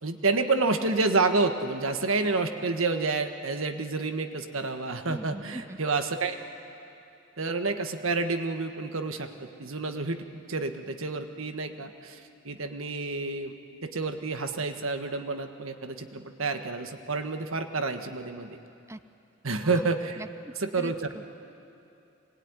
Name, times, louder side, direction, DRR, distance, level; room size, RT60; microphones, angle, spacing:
voice 1, 0.0-6.4 7.4-12.2 12.4-13.5 13.8-18.6 19.4-20.2 20.6-21.1, right 3 dB, 80° right, 7 dB, 1.5 m, -29 dB
voice 2, 5.1-5.8 18.9-19.0 19.7-19.9 20.2-21.3, right 1 dB, 15° right, 13 dB, 0.5 m, -41 dB
24.5 x 20.0 x 9.8 m, 2.7 s
head